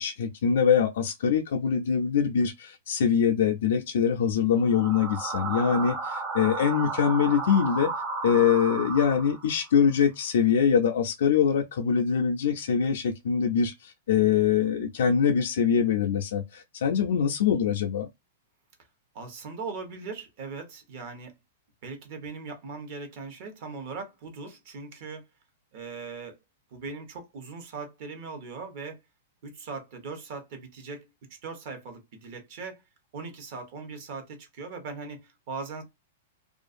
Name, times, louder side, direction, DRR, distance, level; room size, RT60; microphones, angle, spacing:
voice 1, 0.0-7.9 8.2-18.1, left 7 dB, 70° left, 0.4 m, -24 dB
sound 1, 4.6-9.7, right 3 dB, 25° right, 0.6 m, -33 dB
voice 2, 19.1-21.3 21.8-25.2 25.7-26.4 26.7-29.0 29.4-31.0 31.4-32.8 33.1-35.8, right 4 dB, 50° right, 1.0 m, -39 dB
2.5 x 2.4 x 2.5 m
hypercardioid pair, 155°, 0 cm